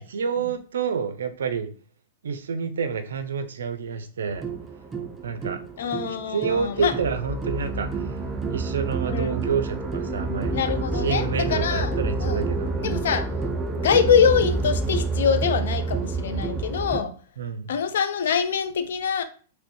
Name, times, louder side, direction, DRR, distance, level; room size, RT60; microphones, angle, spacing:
voice 1, 0.0-1.7 2.2-4.5 5.2-5.6 6.3-8.2 8.5-10.6 10.9-13.1 17.4-17.7, right 6 dB, 85° right, 0.4 m, -28 dB
sound 1, 4.3-17.0, right 3 dB, 15° right, 0.4 m, -28 dB
voice 2, 5.8-6.9 9.0-9.6 10.5-12.4 12.8-13.3 13.8-17.1 17.7-19.2, left 7 dB, 75° left, 0.5 m, -24 dB
3.1 x 3.0 x 3.0 m
hypercardioid pair, 125°, 0 cm